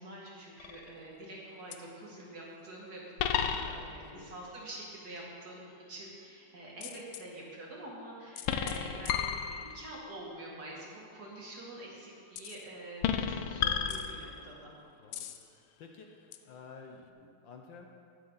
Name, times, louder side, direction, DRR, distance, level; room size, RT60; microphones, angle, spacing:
voice 1, 0.0-5.6 5.9-14.7, right 1 dB, 45° right, -4 dB, 2.4 m, -46 dB
sound 1, 0.6-1.0 1.7-1.8 3.2-4.1 6.8-7.2 8.4-10.0 12.4-12.6 13.0-14.6 15.1-15.4 16.3-16.4, left 8 dB, 85° left, 1.5 m, -33 dB
voice 2, 3.7-4.4 15.0-16.1 16.4-17.9, left 5 dB, 70° left, 3 dB, 1.4 m, -52 dB
19.5 x 6.6 x 4.0 m, 2.4 s
omnidirectional pair, 2.4 m